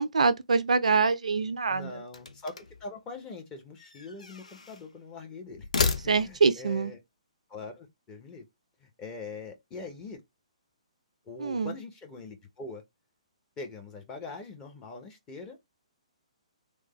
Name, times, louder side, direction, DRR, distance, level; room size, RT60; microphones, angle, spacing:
voice 1, 0.0-1.9 6.1-6.9 11.4-11.7, right 4 dB, 75° right, 0.4 m, -25 dB
voice 2, 1.7-5.7 6.0-7.0 7.5-8.4 8.8-10.2 11.3-12.8 13.6-15.6, left 3 dB, 20° left, 1.0 m, -42 dB
sound 1, 2.1-2.9 3.8-4.9 5.5-6.6, left 4 dB, 75° left, 0.6 m, -33 dB
3.3 x 2.2 x 3.0 m
figure-of-eight pair, 130°, 4 cm